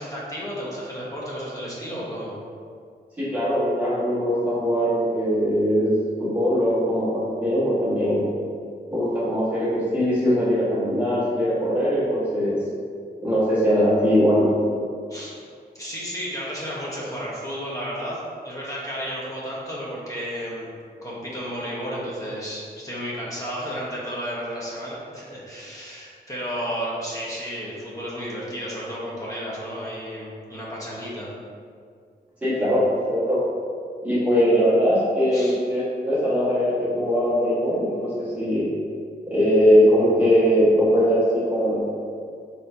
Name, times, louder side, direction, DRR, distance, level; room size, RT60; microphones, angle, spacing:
voice 1, 0.0-2.3 15.1-15.3 15.7-20.7 21.0-31.3 35.3-35.6, equal, 20° left, -6 dB, 1.0 m, -32 dB
voice 2, 3.2-8.3 8.9-12.6 13.2-14.5 32.4-33.4 34.0-38.7 39.3-41.8, equal, 10° right, -11 dB, 1.4 m, -21 dB
4.2 x 4.1 x 2.7 m, 2.2 s
wide cardioid pair, 155°, 18 cm